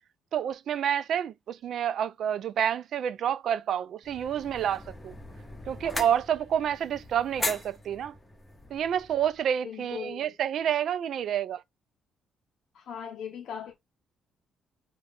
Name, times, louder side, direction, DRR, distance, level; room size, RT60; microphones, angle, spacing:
voice 1, 0.3-5.1 5.7-8.1 8.7-11.6, right 9 dB, 65° right, 0.3 m, -29 dB
sound 1, 4.0-9.4, left 2 dB, 20° left, 0.8 m, -39 dB
voice 2, 9.6-10.4 12.7-13.8, left 7 dB, 70° left, 0.5 m, -39 dB
2.4 x 2.2 x 3.4 m
cardioid pair, 75°, 0 cm